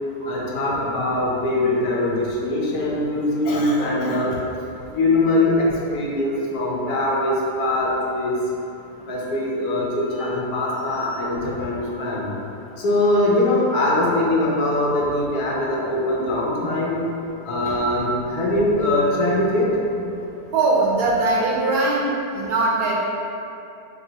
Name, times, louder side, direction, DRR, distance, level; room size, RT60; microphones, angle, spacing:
voice 1, 0.3-4.3 4.9-5.7 5.9-8.4 9.1-12.3 12.8-17.0 17.5-19.7, left 1 dB, 70° left, -4 dB, 1.1 m, -22 dB
voice 2, 20.5-23.1, right 2 dB, 70° right, -4 dB, 1.1 m, -21 dB
4.2 x 2.9 x 2.7 m, 2.8 s
omnidirectional pair, 1.8 m